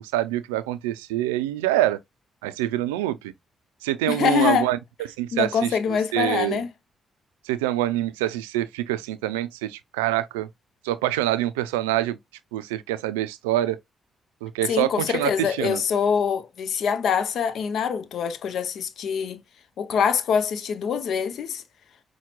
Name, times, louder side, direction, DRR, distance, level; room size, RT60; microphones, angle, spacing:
voice 1, 0.0-2.0 2.4-3.3 3.8-4.8 5.2-6.6 7.4-10.5 10.8-12.2 12.5-13.8 14.4-15.8, right 14 dB, 90° right, 0.3 m, -25 dB
voice 2, 4.1-4.7 5.3-6.7 14.7-19.4 19.8-21.6, left 7 dB, 70° left, 0.6 m, -24 dB
5.6 x 2.2 x 2.9 m
hypercardioid pair, 45°, 0 cm